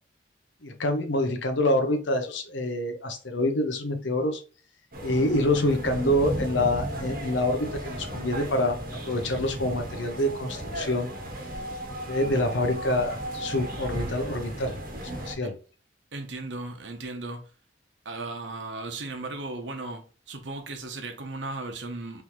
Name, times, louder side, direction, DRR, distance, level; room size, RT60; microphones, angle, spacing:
voice 1, 0.6-4.4 5.0-8.8 9.0-11.1 12.1-15.5, left 1 dB, 80° left, 0.8 m, -26 dB
sound 1, 4.9-15.4, right 1 dB, 50° right, 1.0 m, -35 dB
voice 2, 16.1-17.5 18.0-22.2, right 2 dB, 75° right, 0.9 m, -36 dB
4.3 x 3.4 x 3.1 m
head